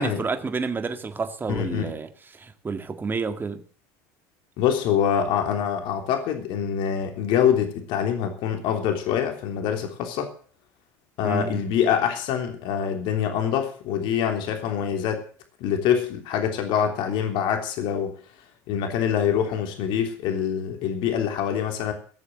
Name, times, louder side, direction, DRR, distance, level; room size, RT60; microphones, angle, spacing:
voice 1, 0.0-3.6 11.2-11.6, right 4 dB, 25° right, 1.9 m, -30 dB
voice 2, 1.5-2.0 4.6-10.3 11.2-15.2 15.6-18.2 18.7-21.9, left 8 dB, 65° left, 3.3 m, -25 dB
18.0 x 7.2 x 7.8 m
supercardioid pair, 95°, 9 cm